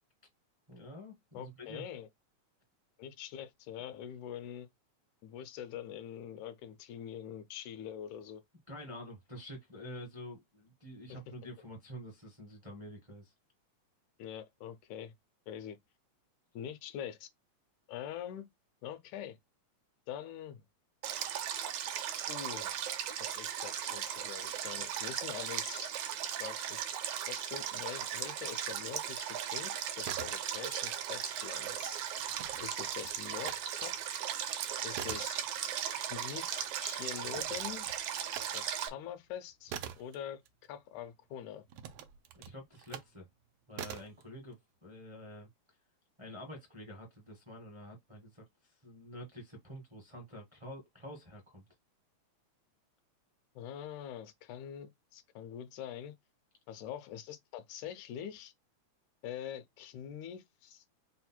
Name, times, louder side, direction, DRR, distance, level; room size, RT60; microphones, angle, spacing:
voice 1, 0.7-1.8 8.7-13.3 42.3-43.3 43.7-45.5 46.2-51.6, equal, 35° right, 0.5 m, -48 dB
voice 2, 1.3-2.1 3.0-4.7 5.2-8.4 11.1-11.2 14.2-15.1 15.5-15.8 16.5-17.3 17.9-18.5 18.8-19.4 20.1-20.6 22.3-22.8 23.2-25.9 26.4-26.8 27.3-32.0 32.6-33.5 33.8-34.1 34.8-35.4 35.9-37.9 38.5-40.4 40.7-41.6 53.6-56.1 56.7-58.5 59.2-60.8, left 9 dB, 90° left, 2.1 m, -44 dB
Stream, 21.0-38.9, right 10 dB, 70° right, 1.5 m, -37 dB
sound 1, 29.9-30.9 31.2-33.6 34.0-41.1 41.7-43.2 43.7-44.2, right 10 dB, 90° right, 1.2 m, -45 dB
4.9 x 2.1 x 4.3 m
omnidirectional pair, 3.3 m